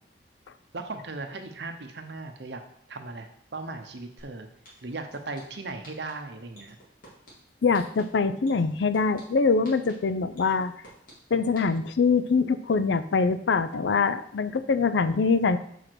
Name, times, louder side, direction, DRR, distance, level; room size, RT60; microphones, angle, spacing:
voice 1, 0.7-2.6 2.9-4.5 4.8-6.8, right 3 dB, 65° right, 6 dB, 0.9 m, -37 dB
sound 1, 4.2-4.3 4.6-5.4 5.8-6.1 6.5-7.3 7.7-8.0 8.5-9.2 9.6-9.9 10.4-11.1 11.6-11.7, left 1 dB, 50° left, 2.7 m, -49 dB
voice 2, 7.6-10.7 11.3-15.6, left 4 dB, 80° left, 12 dB, 0.5 m, -24 dB
5.0 x 4.9 x 6.1 m, 0.68 s
head